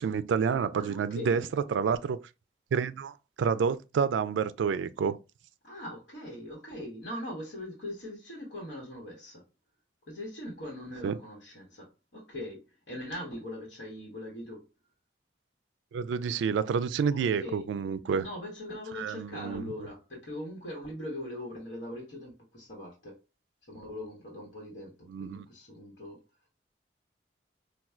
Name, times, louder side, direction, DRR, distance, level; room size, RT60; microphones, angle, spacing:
voice 1, 0.0-1.4 1.7-2.2 2.7-5.2 11.0-11.2 15.9-18.3 18.9-19.7 25.1-25.5, right 6 dB, 85° right, 0.3 m, -29 dB
voice 2, 0.7-1.5 5.6-9.4 10.1-14.7 17.1-17.7 18.2-23.2 23.7-26.2, left 1 dB, 85° left, 1.1 m, -41 dB
4.3 x 2.3 x 2.3 m
head